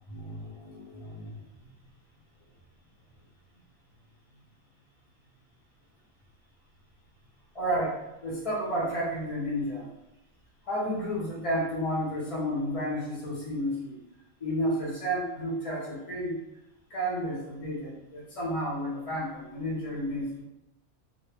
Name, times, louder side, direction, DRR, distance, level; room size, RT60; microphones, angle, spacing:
voice 1, 0.1-1.4 7.5-7.9 8.2-9.9 10.7-14.0 14.4-16.4 16.9-20.4, equal, 30° left, -5 dB, 0.7 m, -31 dB
2.6 x 2.2 x 3.3 m, 0.93 s
omnidirectional pair, 1.4 m